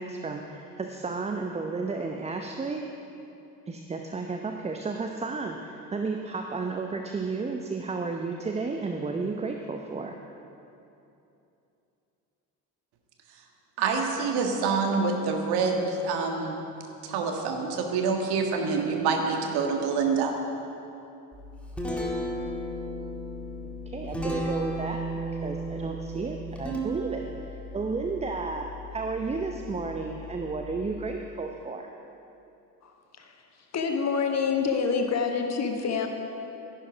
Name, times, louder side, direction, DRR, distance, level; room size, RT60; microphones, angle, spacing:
voice 1, 0.0-2.9 3.7-10.2 23.6-31.9, right 4 dB, 15° right, 3 dB, 0.7 m, -33 dB
voice 2, 13.8-16.6 17.0-20.3, right 4 dB, 55° right, 2 dB, 1.8 m, -26 dB
Guitar, 21.3-31.1, right 1 dB, ahead, 2.2 m, -35 dB
voice 3, 32.8-36.1, left 5 dB, 35° left, 4 dB, 1.4 m, -28 dB
12.5 x 11.0 x 5.1 m, 2.8 s
figure-of-eight pair, 55°, 47 cm